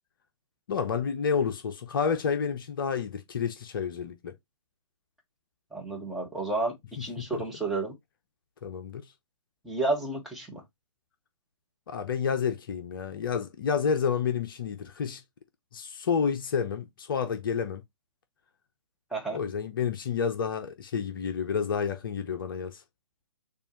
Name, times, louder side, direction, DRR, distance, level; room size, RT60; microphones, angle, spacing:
voice 1, 0.7-4.3 7.0-7.4 8.6-9.1 11.9-15.2 15.7-17.8 19.3-22.8, left 6 dB, 45° left, 0.7 m, -30 dB
voice 2, 5.7-7.9 9.6-10.6 19.1-19.4, right 3 dB, ahead, 1.2 m, -31 dB
6.8 x 2.5 x 3.1 m
figure-of-eight pair, 130°, 16 cm